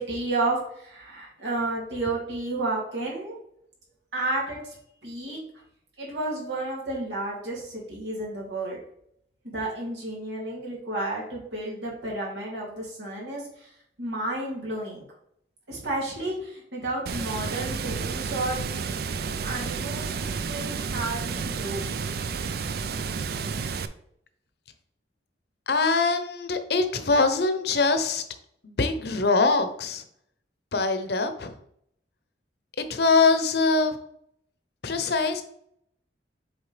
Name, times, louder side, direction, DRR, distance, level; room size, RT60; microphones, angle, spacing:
voice 1, 0.0-3.4 4.1-4.7 5.0-5.4 6.0-8.8 9.4-13.7 14.0-15.0 15.7-18.6 19.4-21.9, right 2 dB, 85° right, -3 dB, 2.6 m, -31 dB
Water, 17.1-23.9, right 5 dB, 60° right, 0.4 m, -31 dB
voice 2, 25.7-28.2 28.6-30.0 30.7-31.5 32.8-34.0 34.8-35.4, left 3 dB, 65° left, 8 dB, 0.8 m, -23 dB
7.3 x 4.5 x 3.3 m, 0.70 s
head